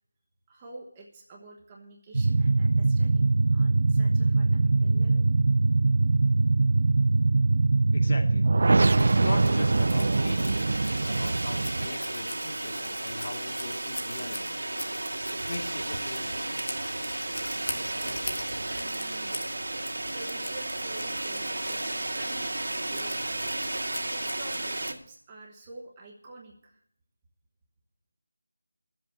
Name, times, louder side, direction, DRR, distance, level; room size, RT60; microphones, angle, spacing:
voice 1, 0.5-5.3 17.7-19.5 20.1-22.5 22.8-23.3 24.1-26.8, right 3 dB, 15° right, -2 dB, 1.2 m, -47 dB
sound 1, 2.1-11.9, right 3 dB, 50° right, 0.4 m, -22 dB
voice 2, 7.9-8.4 9.0-14.6 15.4-16.6, left 2 dB, 35° left, 1 dB, 2.6 m, -40 dB
sound 2, 9.0-24.9, right 2 dB, 80° right, 2.3 m, -33 dB
Scissors, 9.4-25.0, left 2 dB, 60° left, 2.7 m, -42 dB
13.5 x 7.7 x 8.3 m, 0.68 s
figure-of-eight pair, 175°, 0 cm